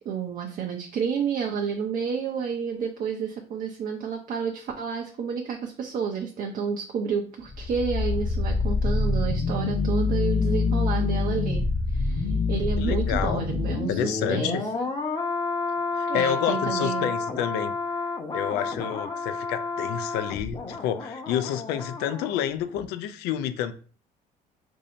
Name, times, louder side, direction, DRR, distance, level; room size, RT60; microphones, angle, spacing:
voice 1, 0.0-11.6 11.9-14.6 16.1-17.1, right 6 dB, 55° right, 1 dB, 0.6 m, -30 dB
sound 1, 7.4-22.4 22.7-22.9, left 4 dB, 25° left, 0.8 m, -27 dB
voice 2, 12.8-13.4 13.9-14.6 15.9-17.8 18.3-23.7, left 10 dB, 80° left, 10 dB, 0.4 m, -29 dB
2.7 x 2.7 x 4.2 m, 0.40 s
supercardioid pair, 85°, 17 cm